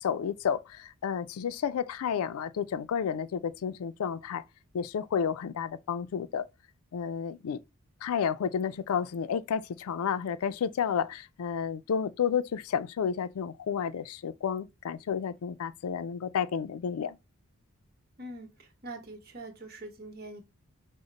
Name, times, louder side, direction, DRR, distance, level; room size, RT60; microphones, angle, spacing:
voice 1, 0.0-4.4 4.7-6.5 6.9-7.6 8.0-17.2, left 7 dB, 85° left, 0.4 m, -31 dB
voice 2, 18.2-20.4, right 2 dB, 45° right, 1.0 m, -43 dB
5.0 x 2.1 x 4.0 m
head